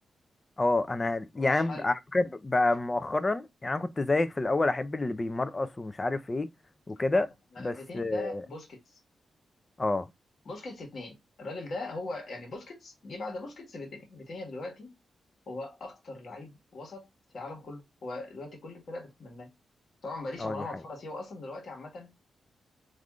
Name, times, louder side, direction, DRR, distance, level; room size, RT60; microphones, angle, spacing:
voice 1, 0.6-6.5 6.9-7.3 7.6-8.4 9.8-10.1 20.4-20.6, left 2 dB, 30° left, 0.4 m, -28 dB
voice 2, 1.3-1.9 7.5-9.0 10.4-14.9 15.5-17.1 17.3-19.5 20.0-22.1, left 2 dB, 60° left, 1.3 m, -40 dB
3.4 x 2.5 x 2.2 m
cardioid pair, 85°, 0 cm